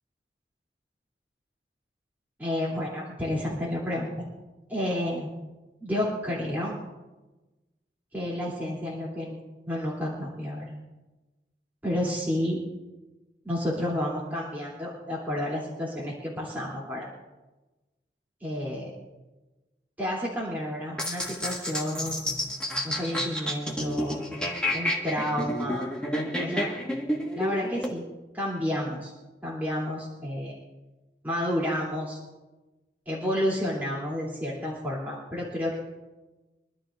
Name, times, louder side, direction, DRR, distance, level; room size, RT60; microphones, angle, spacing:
voice 1, 2.4-4.3 4.7-5.4 5.8-6.8 8.1-9.4 9.7-10.8 11.8-12.6 13.4-17.1 18.4-18.9 20.0-22.3 22.8-24.2 24.7-25.9 26.4-26.7 27.3-28.0 28.3-29.1 29.4-30.6 31.2-32.2 33.1-35.8, left 1 dB, 10° right, -6 dB, 2.9 m, -30 dB
sound 1, 21.0-27.9, left 1 dB, 5° left, 1.5 m, -30 dB
25.0 x 12.0 x 2.5 m, 1.1 s
head